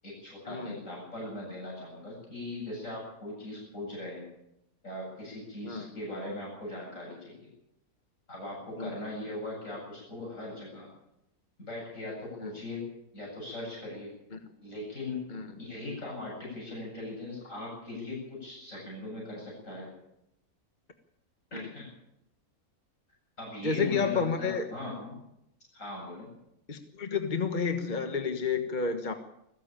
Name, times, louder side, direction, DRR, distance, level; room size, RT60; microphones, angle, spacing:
voice 1, 0.0-4.3 4.8-7.5 8.3-10.9 11.6-12.9 13.1-14.1 14.6-15.2 15.6-19.9 21.5-21.9 23.4-25.2 25.7-26.3, left 2 dB, 60° left, -3 dB, 8.6 m, -39 dB
voice 2, 23.6-24.6 26.7-29.1, left 5 dB, 35° left, 6 dB, 1.4 m, -30 dB
20.0 x 15.5 x 8.9 m, 0.81 s
omnidirectional pair, 1.5 m